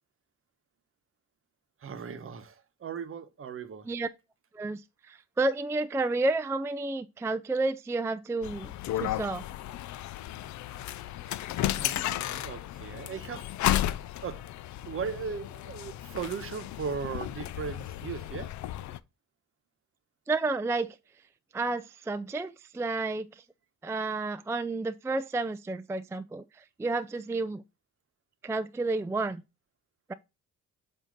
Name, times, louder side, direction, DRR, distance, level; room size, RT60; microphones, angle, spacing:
voice 1, 1.8-3.9 11.3-11.5 11.7-13.5 14.2-14.4 14.8-18.5, right 6 dB, 45° right, 1.0 m, -38 dB
voice 2, 4.5-9.4 20.3-21.0 21.5-23.4 23.8-27.6 28.4-29.4, right 3 dB, 10° right, 0.3 m, -31 dB
sound 1, 8.4-19.0, left 13 dB, 70° left, 0.5 m, -34 dB
7.6 x 2.8 x 5.2 m
cardioid pair, 90°, 30 cm